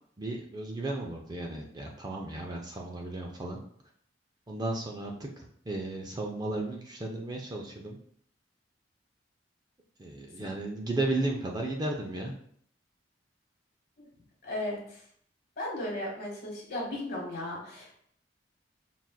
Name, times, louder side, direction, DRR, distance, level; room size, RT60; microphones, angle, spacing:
voice 1, 0.2-3.6 4.5-8.0 10.0-12.3, right 2 dB, 20° right, 0 dB, 0.4 m, -34 dB
voice 2, 14.4-14.8 15.6-18.0, left 1 dB, 55° left, -3 dB, 1.3 m, -35 dB
5.6 x 2.4 x 2.2 m, 0.65 s
head